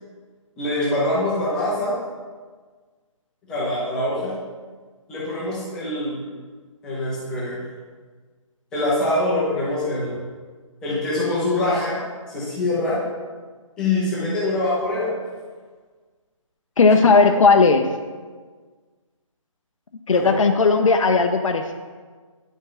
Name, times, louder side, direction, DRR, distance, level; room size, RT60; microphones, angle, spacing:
voice 1, 0.6-2.0 3.5-4.3 5.1-6.2 6.8-7.6 8.7-10.2 10.8-12.0 12.3-13.0 13.8-15.1 17.0-17.3 20.1-20.3, left 1 dB, 5° left, -8 dB, 0.7 m, -24 dB
voice 2, 16.8-17.9 20.1-21.7, left 4 dB, 70° left, 5 dB, 0.7 m, -16 dB
9.9 x 5.4 x 3.9 m, 1.5 s
hypercardioid pair, 175°, 17 cm